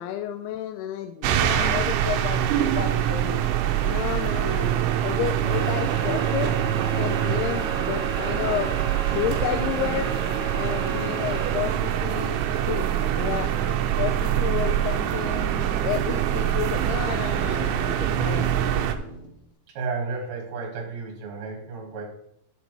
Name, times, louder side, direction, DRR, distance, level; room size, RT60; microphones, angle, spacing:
voice 1, 0.0-3.4 3.8-6.6 6.9-8.7 9.0-10.1 10.5-12.4 12.7-15.5 15.8-18.9, left 11 dB, 85° left, 7 dB, 2.6 m, -31 dB
sound 1, 1.2-19.0, right 10 dB, 80° right, 2.6 m, -24 dB
sound 2, 5.5-11.5, equal, 15° right, 1.3 m, -38 dB
sound 3, 8.1-19.5, right 2 dB, 40° right, 1.3 m, -45 dB
voice 2, 19.7-22.0, right 4 dB, 55° right, 1 dB, 2.5 m, -32 dB
11.0 x 7.1 x 3.3 m, 0.75 s
omnidirectional pair, 4.6 m